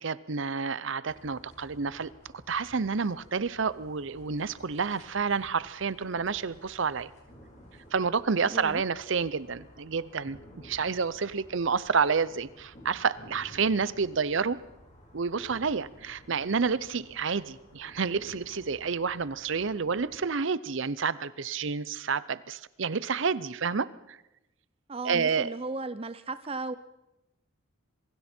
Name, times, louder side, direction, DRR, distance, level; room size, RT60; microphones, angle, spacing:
voice 1, 0.0-2.1 2.5-7.1 7.9-10.4 10.6-14.6 15.1-24.2 25.0-25.5, right 5 dB, 65° right, 17 dB, 0.7 m, -29 dB
sound 1, 1.1-20.3, equal, 35° left, 4.6 m, -54 dB
voice 2, 8.5-8.8 24.9-26.7, right 3 dB, 30° right, 12 dB, 0.6 m, -35 dB
27.0 x 22.5 x 4.5 m, 0.92 s
head